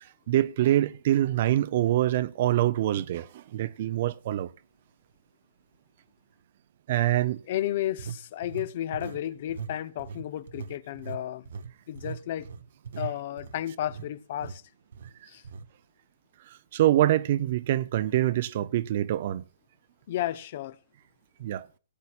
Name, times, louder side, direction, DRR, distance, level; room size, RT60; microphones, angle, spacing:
voice 1, 0.3-4.5 6.9-7.4 16.7-19.4 21.4-21.7, right 13 dB, 45° right, 0.6 m, -25 dB
sound 1, 3.5-3.6 4.3-4.4 8.0-9.2 9.5-9.7 10.0-14.1 14.4-14.6 14.9-15.1 15.4-15.7, right 6 dB, 65° right, 0.9 m, -40 dB
voice 2, 7.5-11.5 11.9-12.5 13.0-14.6 15.3-15.4 20.1-20.8, left 12 dB, 45° left, 0.7 m, -32 dB
18.0 x 8.4 x 2.5 m
hypercardioid pair, 155°, 0 cm